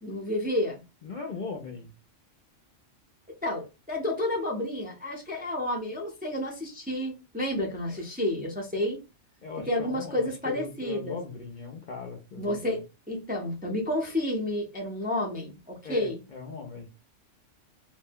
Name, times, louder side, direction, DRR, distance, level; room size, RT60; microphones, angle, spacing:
voice 1, 0.0-0.8 3.4-9.0 9.7-11.2 12.4-16.2, left 1 dB, 10° right, 0.5 m, -30 dB
voice 2, 1.0-1.9 9.4-12.8 15.8-16.9, left 4 dB, 55° left, 0.5 m, -39 dB
2.6 x 2.2 x 3.4 m
omnidirectional pair, 1.3 m